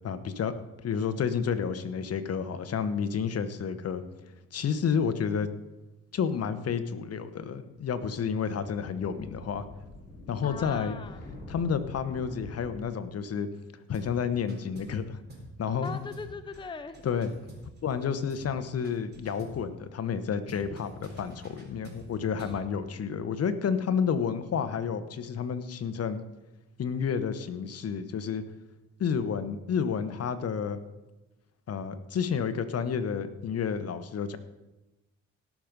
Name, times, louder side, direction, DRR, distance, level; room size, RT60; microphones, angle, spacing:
voice 1, 0.0-0.5 0.8-4.0 4.5-5.5 6.1-9.6 10.3-11.0 11.5-13.5 13.9-15.2 15.6-16.0 17.0-17.3 17.8-26.2 26.8-28.4 29.0-30.8 31.7-34.4, left 6 dB, 55° left, 10 dB, 1.1 m, -30 dB
sound 1, 7.8-12.8, left 2 dB, 30° left, 4.5 m, -46 dB
voice 2, 10.4-11.2 15.8-17.1 22.4-22.6, left 4 dB, 15° left, 9 dB, 0.7 m, -40 dB
sound 2, 13.9-14.2 14.5-15.0 15.3-15.6 15.8-18.0 18.3-18.6 18.8-19.6 20.5-22.6, right 1 dB, 35° right, 3.7 m, -48 dB
18.0 x 6.1 x 5.2 m, 1.0 s
cardioid pair, 90°, 30 cm